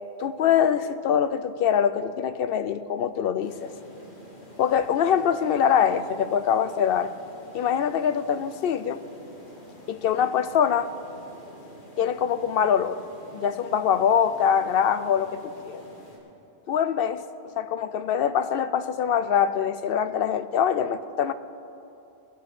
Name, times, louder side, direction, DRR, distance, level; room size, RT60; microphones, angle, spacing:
voice 1, 0.2-3.7 4.6-7.1 7.5-9.0 9.9-10.9 12.0-13.0 13.3-15.8 16.7-17.2 17.6-21.3, left 8 dB, 65° left, 13 dB, 0.7 m, -24 dB
sound 1, 3.4-16.2, left 1 dB, 50° left, 2.2 m, -47 dB
20.5 x 7.0 x 6.0 m, 2.9 s
omnidirectional pair, 1.1 m